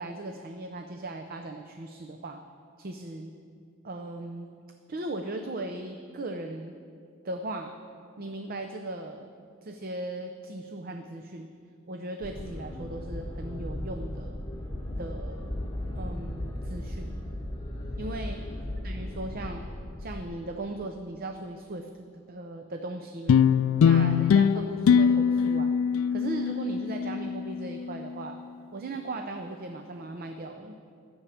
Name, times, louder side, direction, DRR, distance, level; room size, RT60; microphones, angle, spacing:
voice 1, 0.0-2.4 2.8-3.3 3.8-4.5 4.9-6.7 7.2-7.8 8.2-9.3 9.6-11.5 11.9-14.4 15.0-15.5 15.9-17.2 18.0-18.4 18.8-19.6 20.0-23.4 23.8-25.7 26.1-28.4 28.7-30.8, right 2 dB, 45° right, 5 dB, 0.6 m, -38 dB
sound 1, 12.2-20.2, left 1 dB, 20° left, 1.3 m, -36 dB
sound 2, 23.3-27.9, left 7 dB, 85° left, 0.3 m, -22 dB
13.0 x 7.1 x 8.5 m, 2.4 s
head